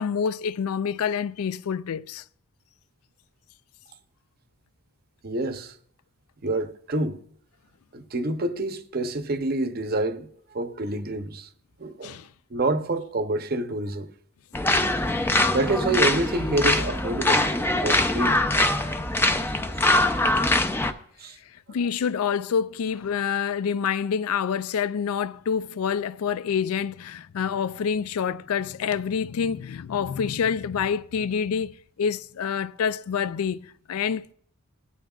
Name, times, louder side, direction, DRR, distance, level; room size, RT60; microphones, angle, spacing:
voice 1, 0.0-2.2 12.0-12.3 19.8-20.0 21.7-34.3, left 7 dB, 85° left, 0.4 m, -27 dB
voice 2, 5.2-5.8 6.4-7.2 7.9-11.5 11.8-12.2 12.5-14.1 15.3-17.5 17.8-18.4 19.7-19.8 21.2-21.4, right 2 dB, 45° right, 0.7 m, -27 dB
sound 1, 14.5-20.9, left 2 dB, 10° left, 0.4 m, -23 dB
17.5 x 12.5 x 2.4 m
head